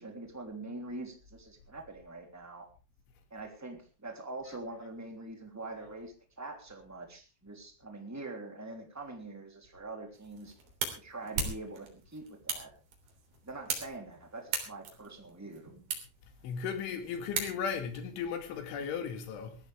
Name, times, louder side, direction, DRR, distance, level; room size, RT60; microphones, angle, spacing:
voice 1, 0.0-2.6 3.3-10.5 10.9-12.7 13.4-15.7, right 2 dB, 5° right, 1.9 m, -44 dB
sound 1, 10.1-18.0, right 5 dB, 55° right, 4.9 m, -40 dB
voice 2, 16.4-19.6, left 6 dB, 70° left, 4.4 m, -36 dB
20.0 x 15.0 x 3.5 m
omnidirectional pair, 5.8 m